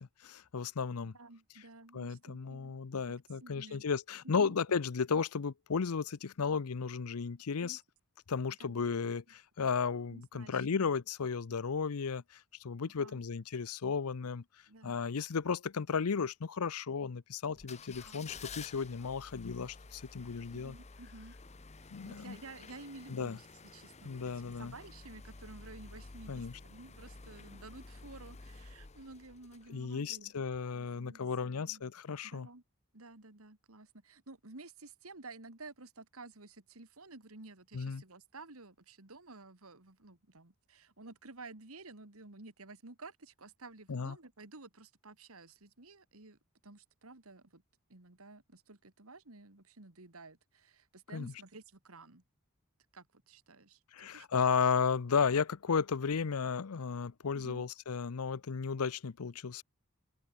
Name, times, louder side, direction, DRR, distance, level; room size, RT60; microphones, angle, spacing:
voice 1, 0.2-1.2 1.9-7.8 8.3-14.4 14.8-20.7 21.9-22.4 23.1-23.4 24.0-24.7 26.3-26.5 29.7-32.5 37.7-38.0 43.9-44.2 51.1-51.3 53.9-59.6, left 5 dB, 85° left, 0.6 m, -34 dB
voice 2, 1.1-2.8 3.1-3.9 4.2-4.6 7.6-7.8 8.6-9.1 10.1-10.9 12.8-13.2 14.7-15.0 18.0-18.3 20.5-21.4 22.0-23.5 23.7-30.4 30.7-31.8 32.2-32.6 32.9-46.4 46.6-47.6 47.9-52.2 52.9-54.6 57.3-57.6, right 3 dB, 75° right, 2.4 m, -53 dB
sound 1, 17.6-30.0 30.5-30.6, left 4 dB, 30° left, 0.9 m, -51 dB
head